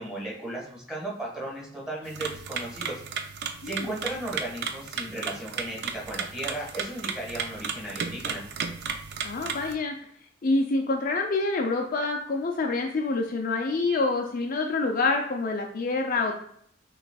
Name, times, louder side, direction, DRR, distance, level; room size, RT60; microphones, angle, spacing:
voice 1, 0.0-3.0 3.6-8.4, right 1 dB, 5° right, -4 dB, 1.5 m, -35 dB
sound 1, 2.0-9.7, right 6 dB, 55° right, 0.4 m, -34 dB
voice 2, 3.6-3.9 9.2-10.0 10.4-16.3, left 3 dB, 45° left, 2 dB, 0.4 m, -27 dB
6.0 x 3.1 x 2.3 m, 0.65 s
head